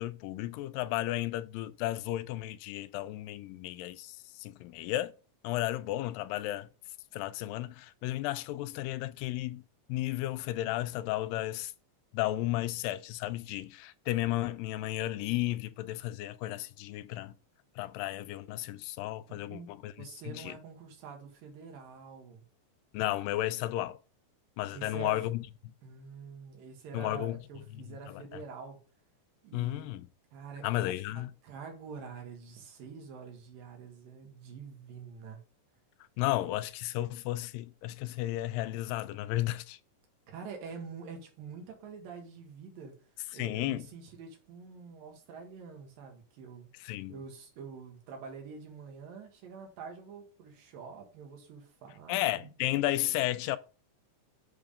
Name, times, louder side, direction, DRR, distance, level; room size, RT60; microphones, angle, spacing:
voice 1, 0.0-5.1 5.4-6.7 7.1-9.6 9.9-11.7 12.1-17.3 17.8-20.5 22.9-24.0 24.6-25.7 26.9-27.4 28.1-28.2 29.5-30.1 30.6-31.3 36.2-39.8 43.3-43.9 46.8-47.2 52.1-53.6, left 15 dB, 85° left, 2.3 m, -33 dB
voice 2, 19.3-19.7 20.0-22.4 24.7-25.2 25.8-28.8 29.4-29.8 30.3-30.9 31.2-35.4 40.3-43.0 43.3-52.5, right 5 dB, 80° right, 3.3 m, -46 dB
7.8 x 3.5 x 5.0 m
omnidirectional pair, 3.9 m